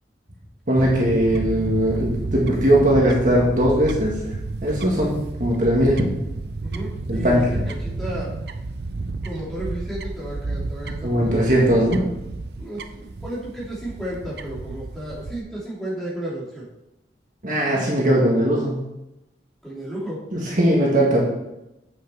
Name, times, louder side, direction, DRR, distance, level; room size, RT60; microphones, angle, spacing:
voice 1, 0.7-4.2 4.6-6.1 7.1-7.6 11.0-12.0 17.4-18.9 20.3-21.2, equal, 45° right, -3 dB, 1.8 m, -19 dB
Fowl / Bird, 0.8-15.4, right 3 dB, 65° right, 0.5 m, -31 dB
voice 2, 6.6-8.3 9.2-11.4 12.6-16.7 19.6-20.2, right 1 dB, ahead, -7 dB, 2.9 m, -33 dB
7.8 x 6.3 x 4.6 m, 0.91 s
head